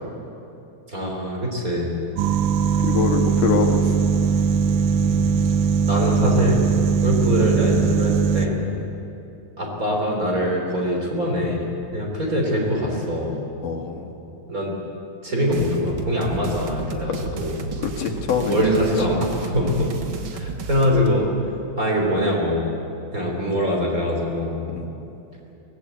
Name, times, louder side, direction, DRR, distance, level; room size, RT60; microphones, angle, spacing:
voice 1, 0.9-1.9 5.0-5.3 5.9-6.7 7.0-8.5 9.6-11.7 11.9-13.4 14.5-14.8 15.2-17.7 18.5-19.9 20.3-21.3 21.8-22.7 23.1-24.6, equal, 25° right, 0 dB, 4.0 m, -23 dB
sound 1, 2.2-8.5, right 6 dB, 85° right, 2.6 m, -20 dB
voice 2, 2.8-3.8 8.8-8.9 13.6-14.1 17.8-18.6 19.6-19.9 24.7-24.9, left 6 dB, 85° left, 2 dB, 3.3 m, -24 dB
sound 2, 15.5-21.1, right 4 dB, 50° right, 1.7 m, -33 dB
23.0 x 18.0 x 8.4 m, 2.8 s
omnidirectional pair, 3.6 m